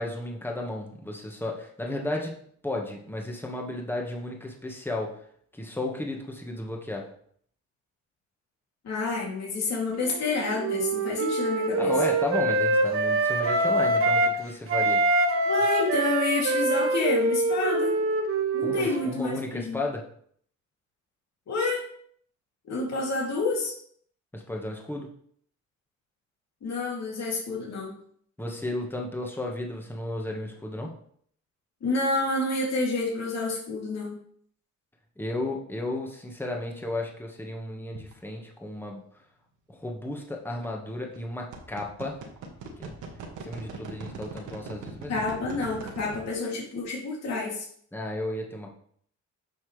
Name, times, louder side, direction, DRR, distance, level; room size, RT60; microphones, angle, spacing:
voice 1, 0.0-2.4 2.6-5.2 5.5-7.1 11.8-15.0 18.6-20.1 24.3-25.1 28.4-30.9 35.2-39.0 39.7-42.2 42.8-42.9 43.4-45.1 46.0-46.1 47.9-48.7, left 2 dB, 5° left, 0 dB, 1.6 m, -33 dB
voice 2, 8.8-11.9 15.4-17.9 18.5-19.8 21.5-21.8 22.6-23.7 26.6-28.0 31.8-34.2 45.1-47.7, left 2 dB, 60° left, -4 dB, 3.0 m, -29 dB
Wind instrument woodwind instrument, 10.0-14.4 14.7-19.2, right 2 dB, 45° right, 1.7 m, -25 dB
sound 1, 38.0-38.1 40.5-40.7 41.1-46.3, right 5 dB, 80° right, 1.7 m, -40 dB
8.5 x 6.0 x 3.4 m, 0.62 s
cardioid pair, 90°, 30 cm